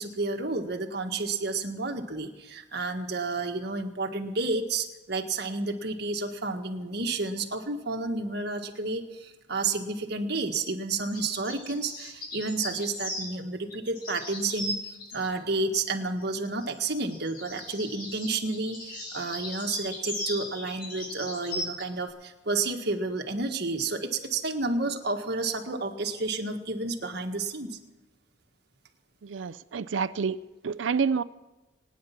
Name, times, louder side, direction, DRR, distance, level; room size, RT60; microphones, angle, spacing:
voice 1, 0.0-27.8, right 3 dB, 60° right, 4 dB, 1.7 m, -31 dB
sound 1, 11.1-13.3 13.7-15.3 16.6-21.8, left 1 dB, 50° left, 6.7 m, -37 dB
voice 2, 29.2-30.4 30.6-31.2, right 5 dB, 80° right, 14 dB, 0.5 m, -28 dB
25.0 x 9.7 x 5.9 m, 1.1 s
head